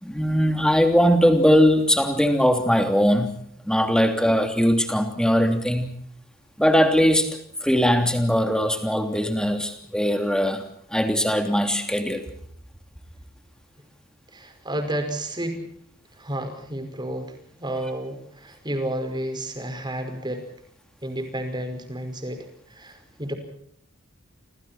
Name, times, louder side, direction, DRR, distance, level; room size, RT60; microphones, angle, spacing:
voice 1, 0.0-3.4 3.6-5.9 6.6-7.3 7.6-10.6 10.9-12.3, equal, 5° left, 6 dB, 3.1 m, -20 dB
voice 2, 14.3-15.6 16.1-20.4 21.0-23.3, right 1 dB, 20° right, 7 dB, 5.3 m, -31 dB
29.0 x 26.5 x 4.4 m, 0.67 s
head